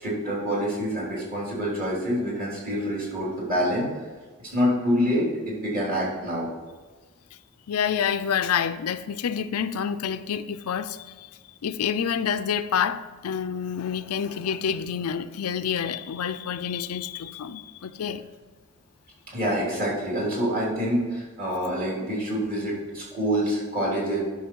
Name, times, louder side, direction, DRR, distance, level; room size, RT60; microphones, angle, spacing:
voice 1, 0.0-3.9 4.4-6.5 19.3-24.2, equal, 45° right, 3.2 m, -26 dB
voice 2, 7.7-11.3 11.6-18.3, left 7 dB, 90° left, 0.5 m, -28 dB
11.0 x 5.7 x 4.6 m
head